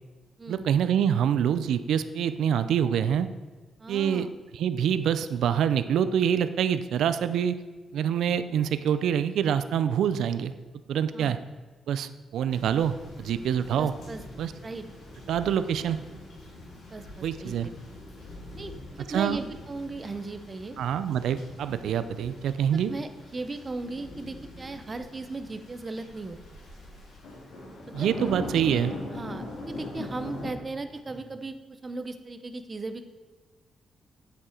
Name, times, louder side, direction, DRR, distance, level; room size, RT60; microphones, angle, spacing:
voice 1, 0.5-3.3 3.9-4.3 4.5-7.6 7.9-10.5 10.9-11.4 11.9-13.9 14.4-14.5 15.3-16.0 17.2-17.7 19.1-19.4 20.8-22.9 27.9-28.9, right 8 dB, 90° right, 12 dB, 0.5 m, -26 dB
voice 2, 3.8-4.4 11.1-11.4 13.8-14.2 14.6-14.9 16.9-17.5 18.6-20.8 22.7-26.6 27.8-28.1 28.6-33.0, right 3 dB, 25° right, 9 dB, 0.7 m, -37 dB
sound 1, 12.5-30.5, left 1 dB, 85° left, 3.5 m, -42 dB
9.2 x 8.7 x 4.4 m, 1.3 s
wide cardioid pair, 160°, 0 cm